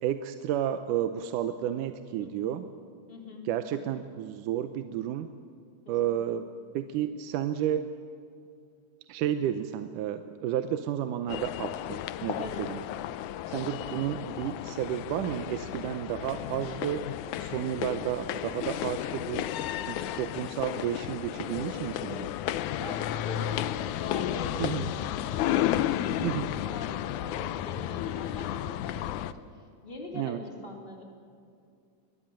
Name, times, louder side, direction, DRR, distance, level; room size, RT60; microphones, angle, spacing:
voice 1, 0.0-2.7 3.5-5.3 5.9-6.5 6.7-7.9 9.1-12.8 13.5-17.1 17.4-19.5 19.9-22.3 24.6-24.9 26.2-26.6 30.1-30.4, right 10 dB, 75° right, 9 dB, 2.2 m, -31 dB
voice 2, 3.1-3.5 3.7-3.9 6.0-6.1 12.4-12.7 13.5-13.7 19.7-20.1 22.7-29.4 29.8-31.0, left 2 dB, 15° left, 1 dB, 3.2 m, -43 dB
sound 1, 11.3-29.3, left 12 dB, 75° left, 2.0 m, -33 dB
23.5 x 18.5 x 9.1 m, 2.4 s
omnidirectional pair, 3.9 m